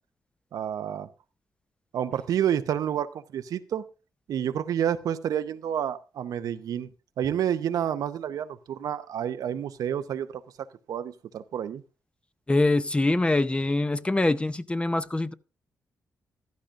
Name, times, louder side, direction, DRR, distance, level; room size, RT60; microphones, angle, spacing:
voice 1, 0.5-1.1 1.9-3.1 3.3-3.8 4.3-6.9 7.2-10.3 10.9-11.8, right 9 dB, 85° right, 0.7 m, -29 dB
voice 2, 12.5-15.3, left 2 dB, 15° left, 0.7 m, -24 dB
15.0 x 12.0 x 2.5 m
cardioid pair, 85°, 6 cm